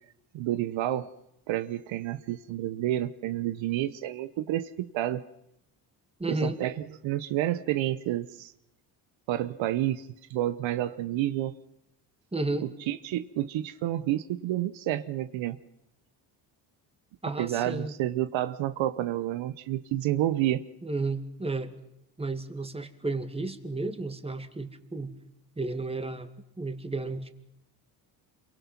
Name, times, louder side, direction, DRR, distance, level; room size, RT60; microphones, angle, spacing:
voice 1, 0.3-1.1 1.5-5.2 6.3-8.5 9.3-11.5 12.9-15.6 17.4-20.6, right 13 dB, 80° right, 13 dB, 1.0 m, -29 dB
voice 2, 6.2-6.6 12.3-12.7 17.2-17.9 20.8-21.7 22.2-25.1 25.6-26.3 26.6-27.3, right 2 dB, 15° right, 8 dB, 2.1 m, -32 dB
27.5 x 23.5 x 6.0 m, 0.83 s
cardioid pair, 85°, 45 cm